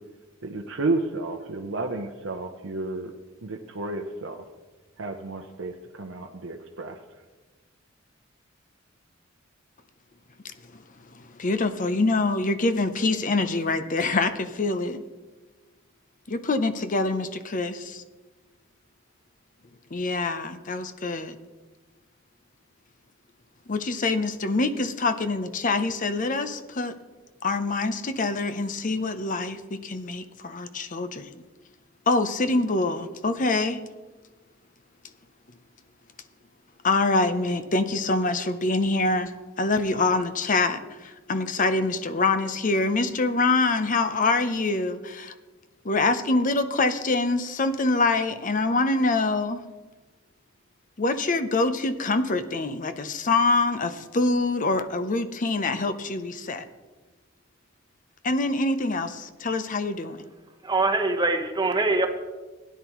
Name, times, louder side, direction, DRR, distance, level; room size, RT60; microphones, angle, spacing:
voice 1, 0.4-3.1 3.4-4.4 5.0-7.0, right 2 dB, 70° right, 3 dB, 0.7 m, -31 dB
voice 2, 11.4-15.0 16.3-18.0 19.9-21.3 23.7-26.9 27.4-31.3 32.1-33.8 36.8-39.3 39.6-40.8 41.3-45.3 45.9-49.6 51.0-56.6 58.2-60.2, left 3 dB, 40° left, 10 dB, 0.7 m, -25 dB
voice 3, 60.6-62.1, right 2 dB, 20° right, 4 dB, 1.0 m, -23 dB
16.5 x 10.5 x 3.1 m, 1.2 s
head